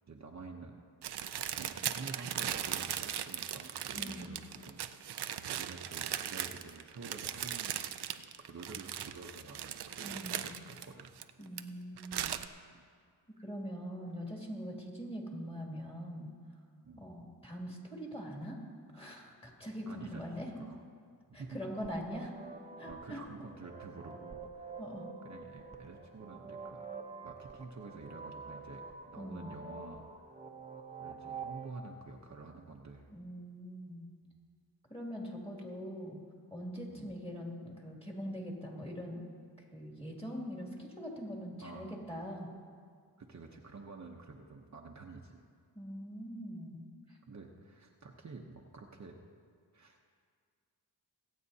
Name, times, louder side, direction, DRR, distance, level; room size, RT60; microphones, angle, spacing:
voice 1, 0.1-0.8 1.4-7.9 8.4-11.2 12.7-12.9 16.8-17.1 19.8-20.2 20.5-20.8 21.3-21.6 22.8-24.8 25.2-26.9 27.2-30.0 31.0-33.1 34.3-34.4 36.9-37.1 41.6-42.1 43.2-45.4 47.3-49.2 49.7-50.0, right 3 dB, 45° right, 1 dB, 0.9 m, -49 dB
sound 1, 1.0-11.6 12.0-12.5, right 10 dB, 70° right, 0.6 m, -38 dB
voice 2, 3.9-4.3 10.0-10.5 11.4-12.3 13.4-16.3 17.0-18.6 18.9-20.5 21.3-22.3 22.8-23.2 24.8-25.1 29.2-29.6 33.1-34.1 34.9-36.2 36.5-39.3 39.7-42.5 45.7-47.2, equal, 15° left, -2 dB, 2.4 m, -42 dB
sound 2, 21.7-31.7, right 5 dB, 15° right, 0.9 m, -47 dB
25.0 x 8.4 x 2.8 m, 2.1 s
wide cardioid pair, 80°, 41 cm